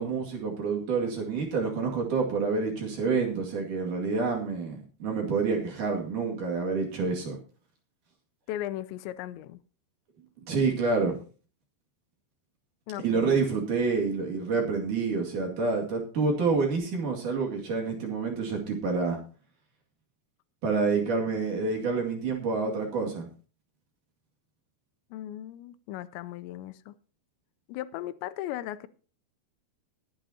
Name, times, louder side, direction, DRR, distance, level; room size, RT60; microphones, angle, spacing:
voice 1, 0.0-7.4 10.5-11.2 13.0-19.2 20.6-23.3, right 4 dB, 50° right, 3.3 m, -28 dB
voice 2, 8.5-9.6 12.9-13.5 25.1-26.9 27.7-28.9, left 13 dB, 85° left, 2.9 m, -37 dB
20.5 x 8.9 x 2.8 m
omnidirectional pair, 5.1 m